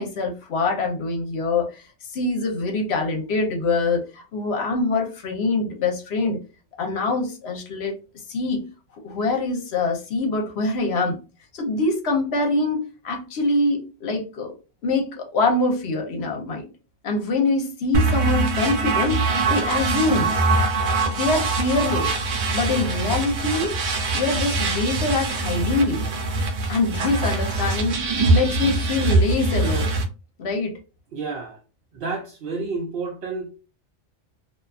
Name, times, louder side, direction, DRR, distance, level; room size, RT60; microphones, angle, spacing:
voice 1, 0.0-6.4 6.8-8.0 8.3-8.7 8.9-11.2 11.5-14.5 14.8-16.6 17.0-19.2 19.5-20.3 21.1-22.1 22.5-23.8 24.1-26.0 26.7-29.9 30.4-30.7, left 3 dB, 65° left, 0.9 m, -24 dB
sound 1, 17.9-30.0, right 3 dB, 90° right, 1.0 m, -23 dB
voice 2, 31.1-31.6 31.9-33.5, right 4 dB, 60° right, 0.7 m, -30 dB
2.6 x 2.3 x 2.3 m
omnidirectional pair, 1.2 m